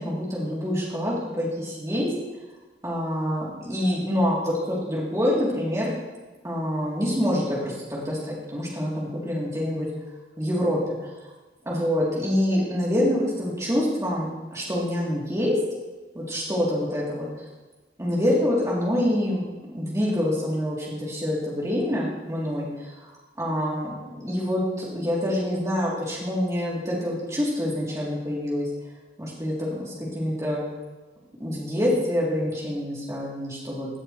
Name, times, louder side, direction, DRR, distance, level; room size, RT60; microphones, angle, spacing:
voice 1, 0.0-2.1 2.8-5.9 6.4-9.9 10.4-11.0 11.6-15.5 16.1-17.3 18.0-19.4 19.7-22.7 23.4-28.7 29.2-30.6 31.4-33.9, equal, 20° right, -6 dB, 3.1 m, -26 dB
17.0 x 7.9 x 3.2 m, 1.2 s
head